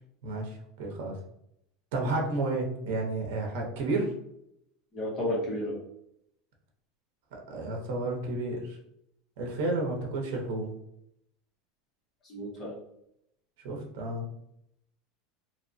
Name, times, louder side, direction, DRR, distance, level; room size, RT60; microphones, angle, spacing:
voice 1, 0.2-1.1 1.9-4.1 7.3-8.8 9.4-10.7 13.6-14.3, right 2 dB, 70° right, 1 dB, 0.7 m, -31 dB
voice 2, 4.9-5.8 12.2-12.7, left 1 dB, 30° left, -3 dB, 0.8 m, -32 dB
2.8 x 2.1 x 2.6 m, 0.76 s
supercardioid pair, 150°, 0 cm